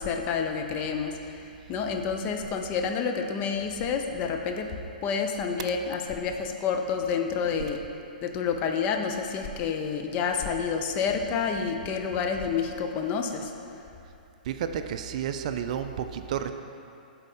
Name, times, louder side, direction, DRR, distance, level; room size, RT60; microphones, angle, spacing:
voice 1, 0.0-4.7 5.0-7.8 8.2-13.5, left 6 dB, 30° left, 4 dB, 0.5 m, -29 dB
voice 2, 14.5-16.5, right 9 dB, 50° right, 8 dB, 0.3 m, -31 dB
8.0 x 4.0 x 4.2 m, 2.6 s
hypercardioid pair, 120°, 5 cm